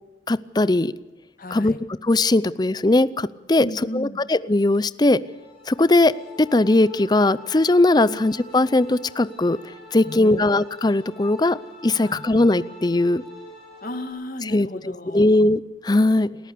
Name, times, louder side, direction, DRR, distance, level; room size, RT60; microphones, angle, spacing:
voice 1, 0.3-0.9 1.5-1.7 2.0-3.7 3.9-5.2 5.7-6.1 6.4-9.6 9.9-11.6 11.8-13.2 14.5-14.7 15.1-16.3, left 2 dB, 25° left, 17 dB, 0.6 m, -19 dB
voice 2, 1.4-1.8 3.6-4.2 8.1-8.2 10.0-10.5 12.0-12.2 13.8-15.2, left 1 dB, 50° left, 8 dB, 1.8 m, -34 dB
sound 1, 5.2-14.1, equal, ahead, 6.8 m, -45 dB
29.0 x 14.0 x 6.8 m, 1.1 s
head